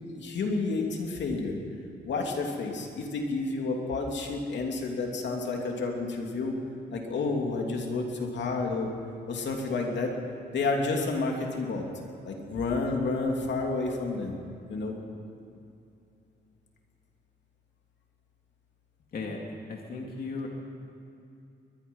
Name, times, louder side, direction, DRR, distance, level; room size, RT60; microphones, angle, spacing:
voice 1, 0.2-1.6 2.0-6.5 6.9-8.9 9.3-10.1 10.5-11.8 12.2-14.4 14.7-14.9, left 3 dB, 90° left, 1 dB, 2.9 m, -30 dB
voice 2, 19.7-20.5, left 4 dB, 55° left, 0 dB, 2.5 m, -36 dB
22.5 x 21.5 x 5.5 m, 2.6 s
wide cardioid pair, 175°, 18 cm